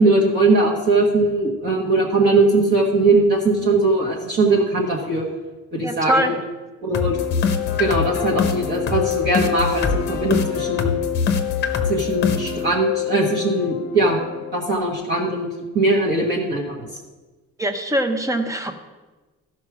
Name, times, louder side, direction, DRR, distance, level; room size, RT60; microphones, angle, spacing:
voice 1, 0.0-5.2 5.7-6.3 6.8-7.2 7.8-11.0 11.9-14.2 14.5-15.5 15.7-16.9, right 2 dB, 35° right, -2 dB, 1.3 m, -20 dB
voice 2, 5.8-6.3 17.6-18.7, right 1 dB, 10° right, 7 dB, 0.6 m, -22 dB
sound 1, 6.9-14.9, left 7 dB, 35° left, 0.8 m, -24 dB
14.0 x 4.7 x 6.0 m, 1.2 s
cardioid pair, 180°, 31 cm